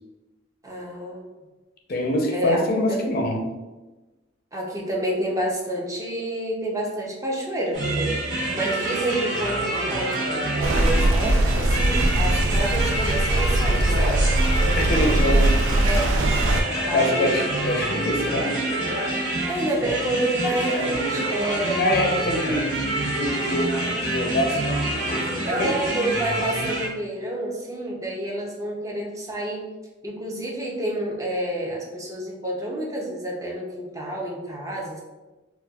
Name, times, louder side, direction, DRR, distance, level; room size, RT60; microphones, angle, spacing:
voice 1, 0.6-1.2 2.3-2.6 2.9-3.0 4.5-14.3 15.8-17.5 19.5-21.9 25.5-29.6 30.0-35.0, right 1 dB, 20° right, -2 dB, 0.6 m, -29 dB
voice 2, 1.9-3.5 14.8-15.6 16.9-18.5 21.8-25.2 25.6-25.7, left 1 dB, 55° left, 1 dB, 0.5 m, -25 dB
sound 1, 7.7-26.9, right 1 dB, 70° right, 0.9 m, -27 dB
sound 2, 10.6-16.6, right 1 dB, 90° right, 0.4 m, -21 dB
4.1 x 2.3 x 2.3 m, 1.1 s
head